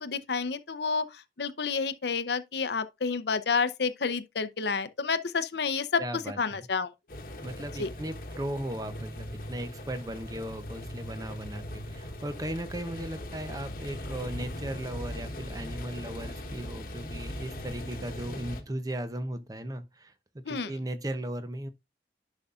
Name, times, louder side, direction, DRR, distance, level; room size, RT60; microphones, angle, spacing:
voice 1, 0.0-6.9 7.8-7.9 20.5-20.8, left 5 dB, 70° left, 0.7 m, -30 dB
voice 2, 6.0-6.7 7.4-20.1 20.5-21.7, right 1 dB, 20° right, 0.6 m, -37 dB
sound 1, 7.1-18.6, left 1 dB, 50° left, 1.1 m, -40 dB
10.5 x 5.4 x 2.4 m
head